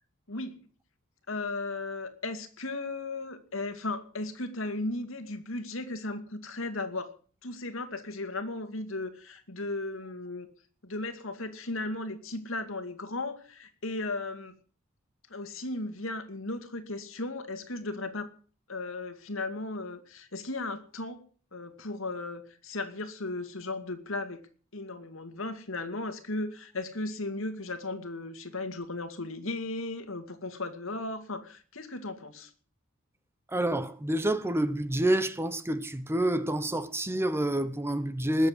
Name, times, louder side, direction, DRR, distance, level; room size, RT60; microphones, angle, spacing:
voice 1, 1.3-7.1 7.4-10.5 10.8-14.5 15.3-18.3 18.7-21.2 21.5-24.4 24.7-32.5, left 2 dB, 70° left, 2.4 m, -36 dB
voice 2, 33.5-38.5, right 1 dB, 10° right, 1.0 m, -28 dB
20.0 x 7.8 x 8.1 m
head